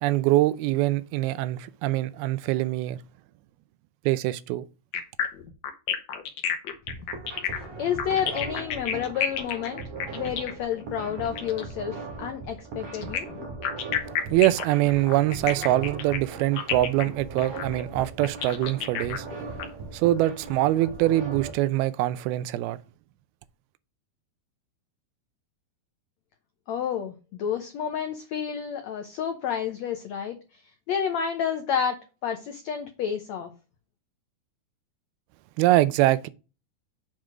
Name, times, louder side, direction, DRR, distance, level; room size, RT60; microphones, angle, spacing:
voice 1, 0.0-3.0 4.1-4.7 14.3-19.3 19.9-22.8 35.6-36.3, right 15 dB, 85° right, 2.5 m, -24 dB
sound 1, 4.9-11.7 12.9-19.6, left 8 dB, 65° left, 1.9 m, -31 dB
sound 2, 6.7-21.5, right 4 dB, 55° right, 2.8 m, -39 dB
voice 2, 7.8-9.8 10.1-13.3 26.7-33.5, left 8 dB, 90° left, 1.5 m, -30 dB
7.5 x 4.6 x 4.9 m
omnidirectional pair, 4.3 m